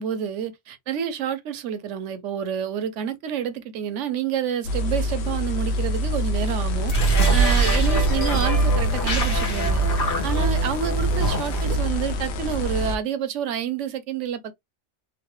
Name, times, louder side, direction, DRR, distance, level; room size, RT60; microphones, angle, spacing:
voice 1, 0.0-9.9 10.2-14.5, right 8 dB, 80° right, 1.0 m, -29 dB
sound 1, 4.6-13.0, left 1 dB, 70° left, 0.8 m, -26 dB
sound 2, 6.8-11.9, right 3 dB, 50° left, 1.2 m, -22 dB
3.0 x 2.6 x 3.0 m
omnidirectional pair, 1.2 m